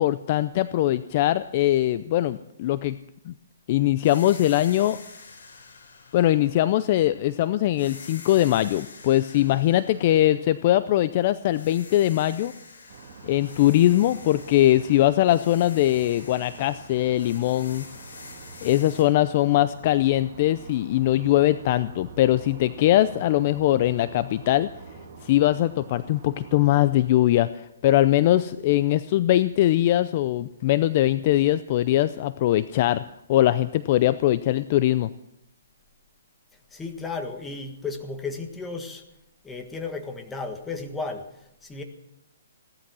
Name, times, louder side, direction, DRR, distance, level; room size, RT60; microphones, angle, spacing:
voice 1, 0.0-3.0 3.3-3.4 3.7-5.0 6.1-12.5 13.2-17.8 18.6-24.7 25.2-33.0 33.3-35.1, left 14 dB, 35° left, 15 dB, 0.5 m, -21 dB
sound 1, 4.0-7.3 7.8-11.1 11.5-19.0, left 4 dB, 70° left, 5.6 m, -47 dB
sound 2, 12.9-26.7, right 4 dB, 45° right, 3.3 m, -46 dB
voice 2, 36.7-39.0 39.4-41.2 41.6-41.8, left 4 dB, 10° left, 5 dB, 1.6 m, -34 dB
17.0 x 12.5 x 6.2 m, 0.84 s
hypercardioid pair, 155°, 0 cm